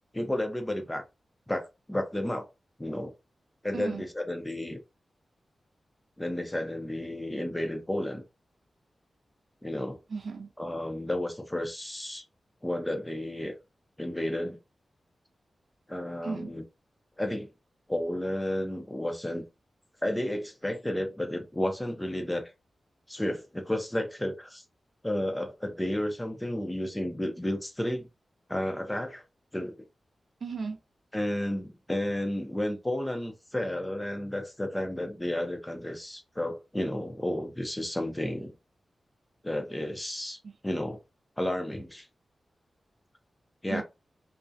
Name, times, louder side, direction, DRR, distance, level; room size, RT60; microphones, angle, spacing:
voice 1, 0.1-1.0 1.5-2.5 2.8-3.1 3.6-4.8 6.2-8.2 9.6-10.0 10.6-12.2 12.6-13.6 14.0-14.6 15.9-16.6 17.2-17.5 17.9-19.4 20.0-22.5 23.1-24.6 25.0-28.1 28.5-29.2 29.5-29.8 31.1-38.5 39.4-40.4 40.6-41.0 41.4-42.1 43.6-43.8, left 1 dB, 10° left, 0.4 m, -32 dB
voice 2, 10.1-10.5 16.2-16.5 30.4-30.8 40.4-40.5 43.7-43.8, right 4 dB, 60° right, 0.3 m, -35 dB
2.3 x 2.0 x 2.5 m
wide cardioid pair, 165°, 0 cm